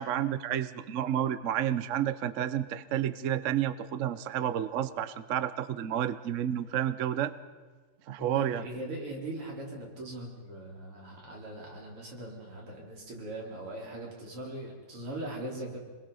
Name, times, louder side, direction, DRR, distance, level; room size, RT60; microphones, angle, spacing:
voice 1, 0.0-7.3 8.1-8.6, right 10 dB, 65° right, 14 dB, 0.8 m, -30 dB
voice 2, 8.2-15.8, right 1 dB, 85° right, -1 dB, 4.9 m, -40 dB
26.5 x 21.5 x 5.6 m, 1.4 s
omnidirectional pair, 2.4 m